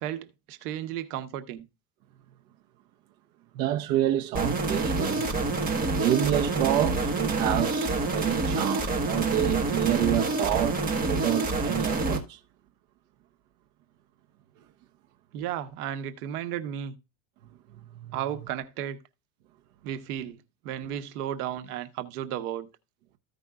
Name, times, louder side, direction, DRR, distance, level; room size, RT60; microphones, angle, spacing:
voice 1, 0.0-1.6 15.3-17.0 18.1-19.0 19.8-20.4 20.6-22.7, right 10 dB, 90° right, 1.2 m, -34 dB
voice 2, 3.5-12.4 17.7-18.2, right 13 dB, 65° right, 1.0 m, -28 dB
sound 1, 4.3-12.2, right 3 dB, 20° right, 1.4 m, -27 dB
15.0 x 5.3 x 2.4 m
cardioid pair, 150°, 44 cm